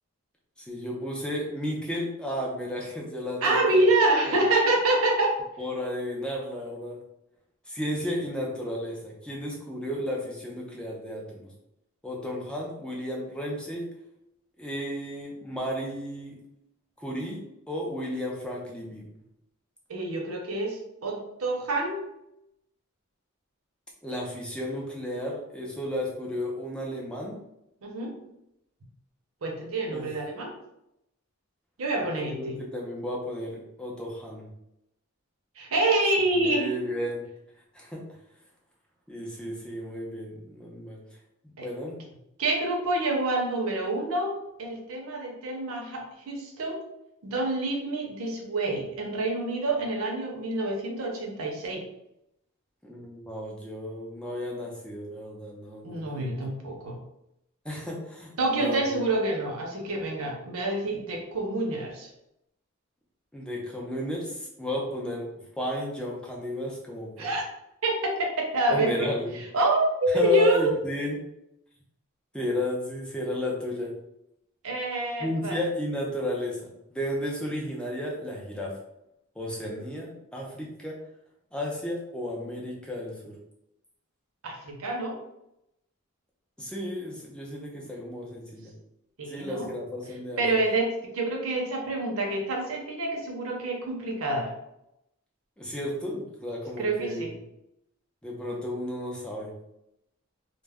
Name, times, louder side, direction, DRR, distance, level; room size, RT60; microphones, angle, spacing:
voice 1, 0.6-3.8 4.3-4.5 5.6-7.0 7.7-11.5 12.0-13.9 14.6-16.4 17.0-19.1 24.0-27.4 29.9-30.1 32.3-34.5 36.4-37.3 37.7-38.0 39.1-41.0 41.6-42.0 52.8-56.4 57.6-59.0 63.3-65.3 65.6-67.3 68.7-69.4 70.1-71.2 72.3-73.9 75.2-76.6 76.9-78.8 79.4-81.0 81.5-83.4 86.6-88.7 89.3-90.4 95.6-97.4 98.2-99.5, left 1 dB, 5° left, -2 dB, 0.4 m, -33 dB
voice 2, 3.4-5.4 19.9-22.1 27.8-28.2 29.4-30.5 31.8-32.6 35.6-36.7 41.6-41.7 42.4-44.3 44.6-46.8 47.2-51.8 55.8-57.0 58.4-62.1 67.2-67.4 67.8-69.1 69.5-70.7 74.6-75.6 84.4-85.2 89.2-89.7 90.4-94.5 96.8-97.3, right 2 dB, 80° right, 0 dB, 0.6 m, -27 dB
2.1 x 2.0 x 3.4 m, 0.83 s
head